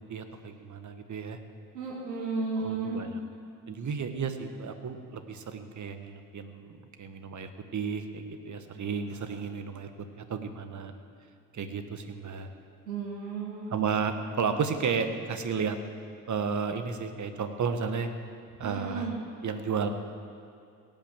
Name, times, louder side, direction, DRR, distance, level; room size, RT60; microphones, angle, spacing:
voice 1, 0.1-1.4 2.6-3.2 3.7-9.9 10.2-10.9 11.5-12.5 13.7-15.8 16.3-18.1 18.6-19.1 19.4-19.9, right 6 dB, 35° right, 8 dB, 1.6 m, -33 dB
voice 2, 1.7-3.1 12.9-13.9 18.6-19.1, right 4 dB, 85° right, -3 dB, 2.5 m, -33 dB
16.5 x 9.2 x 7.5 m, 2.4 s
hypercardioid pair, 60°, 48 cm